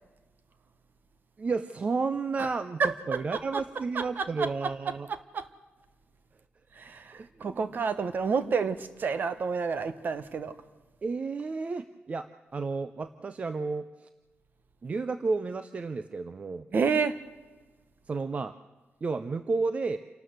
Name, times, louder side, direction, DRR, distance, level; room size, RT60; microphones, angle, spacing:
voice 1, 1.4-2.8 3.1-5.1 7.1-7.6 11.0-14.1 14.8-16.7 18.1-18.5 19.0-20.0, right 4 dB, 35° right, 0.6 m, -32 dB
voice 2, 2.8-3.6 3.9-5.5 6.7-10.6 16.7-17.2, right 5 dB, 50° right, 1.1 m, -30 dB
28.0 x 12.5 x 7.9 m
wide cardioid pair, 170°, 4 cm